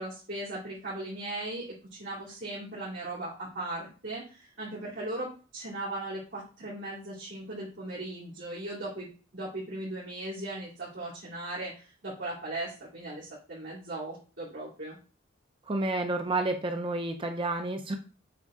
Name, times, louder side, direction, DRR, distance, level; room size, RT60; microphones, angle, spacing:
voice 1, 0.0-15.0, right 2 dB, 60° right, -10 dB, 2.8 m, -38 dB
voice 2, 15.7-17.9, right 2 dB, 25° right, 5 dB, 0.6 m, -30 dB
7.8 x 3.7 x 3.7 m, 0.36 s
head